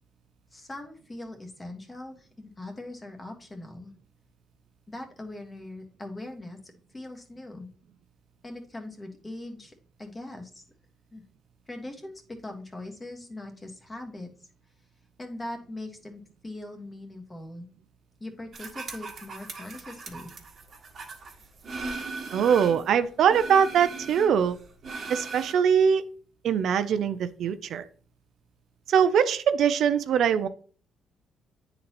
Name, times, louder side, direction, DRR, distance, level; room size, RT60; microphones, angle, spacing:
voice 1, 0.5-3.9 4.9-6.6 6.9-7.7 8.4-10.6 11.1-11.2 11.7-12.1 12.4-14.3 15.2-17.7 18.2-20.3, left 1 dB, 20° left, 3 dB, 1.3 m, -41 dB
sound 1, 18.5-22.9 23.3-25.5, right 3 dB, 45° right, 1.5 m, -39 dB
voice 2, 22.3-24.6 25.1-26.1 26.4-27.9 28.9-30.5, right 7 dB, 70° right, 11 dB, 0.4 m, -22 dB
9.5 x 3.9 x 2.9 m, 0.42 s
cardioid pair, 90°, 0 cm